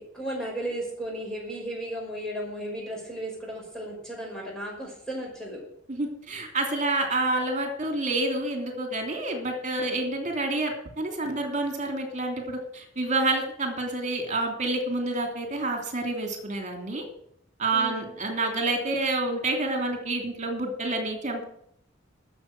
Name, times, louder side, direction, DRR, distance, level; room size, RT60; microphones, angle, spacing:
voice 1, 0.1-5.6 17.7-18.1, right 1 dB, 5° left, -3 dB, 5.5 m, -35 dB
voice 2, 5.9-17.0 17.6-21.4, right 2 dB, 40° right, 4 dB, 3.1 m, -28 dB
12.5 x 7.2 x 9.3 m, 0.71 s
head